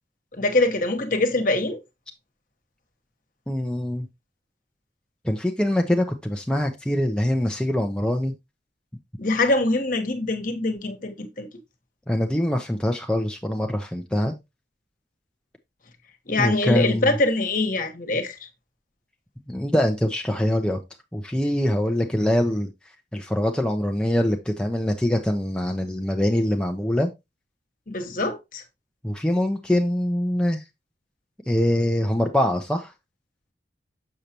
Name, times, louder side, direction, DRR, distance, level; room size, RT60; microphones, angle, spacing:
voice 1, 0.3-1.8 9.2-11.5 16.3-18.4 27.9-28.6, left 2 dB, 50° left, 1.3 m, -24 dB
voice 2, 3.5-4.1 5.2-8.3 12.1-14.3 16.4-17.2 19.5-20.8 21.1-22.7 23.1-27.1 29.0-30.6 31.5-32.9, left 1 dB, 5° left, 0.7 m, -23 dB
6.7 x 6.5 x 2.9 m
head